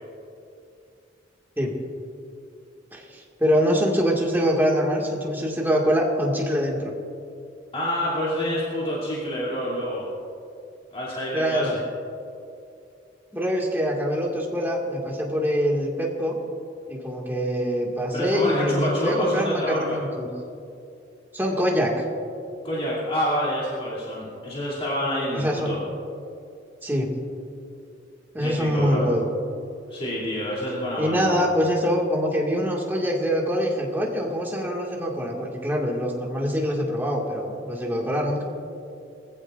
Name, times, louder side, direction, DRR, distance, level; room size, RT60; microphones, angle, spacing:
voice 1, 2.9-6.9 11.3-11.8 13.3-16.3 16.9-20.3 21.3-22.0 25.3-25.8 26.8-27.1 28.3-29.3 31.0-38.4, equal, 10° right, -2 dB, 2.0 m, -24 dB
voice 2, 7.7-10.1 10.9-11.8 18.1-20.0 22.6-25.8 28.4-29.1 29.9-31.5, equal, 30° left, -7 dB, 3.0 m, -27 dB
23.0 x 15.0 x 2.6 m, 2.6 s
head